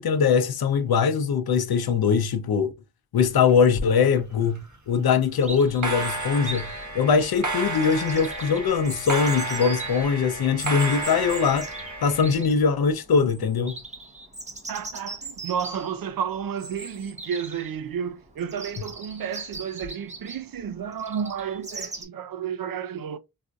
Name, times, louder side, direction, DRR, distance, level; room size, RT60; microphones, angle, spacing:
voice 1, 0.0-2.7 3.1-6.7 6.9-11.7 12.0-13.8, left 6 dB, 90° left, 0.6 m, -22 dB
sound 1, 3.2-4.1 4.3-4.7 5.6-12.4, right 2 dB, 50° right, 1.2 m, -32 dB
Chirp tweet, 5.4-22.0, right 2 dB, 20° right, 0.8 m, -40 dB
voice 2, 14.7-23.2, right 8 dB, 70° right, 0.5 m, -31 dB
4.1 x 2.5 x 2.3 m
wide cardioid pair, 115°, 36 cm